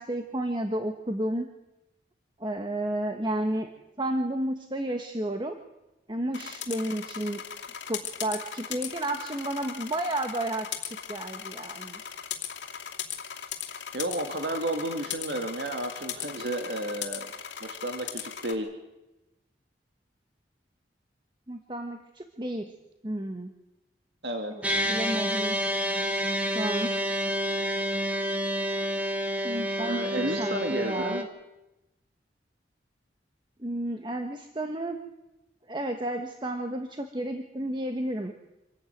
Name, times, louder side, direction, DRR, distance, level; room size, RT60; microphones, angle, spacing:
voice 1, 0.0-1.5 2.4-3.7 4.0-5.6 6.1-7.4 7.9-12.0 21.5-22.7 23.0-23.5 24.7-25.6 26.5-26.9 29.4-31.3 33.6-35.0 35.7-38.3, right 1 dB, 25° right, 5 dB, 1.3 m, -32 dB
sound 1, 6.3-18.5, left 9 dB, 90° left, 2.7 m, -38 dB
voice 2, 13.9-17.3 17.6-18.7 24.2-24.6 25.1-25.2 29.8-31.2, right 1 dB, 70° right, 4 dB, 2.3 m, -32 dB
sound 2, 24.6-31.2, equal, 10° right, 2.2 m, -29 dB
26.0 x 14.0 x 9.3 m, 0.98 s
head